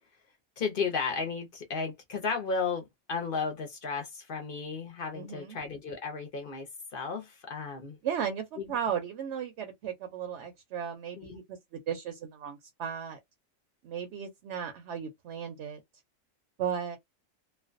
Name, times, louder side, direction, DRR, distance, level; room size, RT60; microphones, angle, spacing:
voice 1, 0.6-2.8 3.1-6.7 6.9-8.0 8.6-8.7 11.2-11.4, left 5 dB, 55° left, 0.6 m, -34 dB
voice 2, 5.1-5.6 8.0-11.6 11.9-13.2 13.8-15.8 16.6-17.0, right 8 dB, 65° right, 0.8 m, -35 dB
2.4 x 2.2 x 2.4 m
omnidirectional pair, 1.4 m